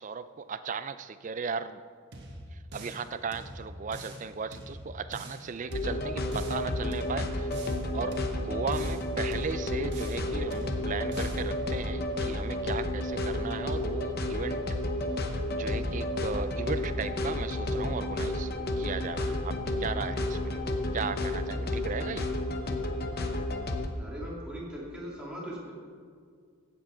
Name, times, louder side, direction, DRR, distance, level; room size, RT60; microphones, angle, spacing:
voice 1, 0.0-1.8 2.5-7.5 7.9-14.6 15.5-20.6 20.9-22.3, right 5 dB, 35° right, 13 dB, 0.4 m, -36 dB
sound 1, 2.1-3.0 3.3-4.2 4.5-5.4 5.7-6.6 6.9-7.8 8.1-9.0 9.3-10.2 10.5-11.4, right 1 dB, 50° right, 1.4 m, -44 dB
sound 2, 5.7-23.9, left 1 dB, 45° left, 0.9 m, -31 dB
voice 2, 23.9-25.7, equal, 5° right, -5 dB, 2.4 m, -40 dB
16.0 x 7.7 x 4.3 m, 2.1 s
head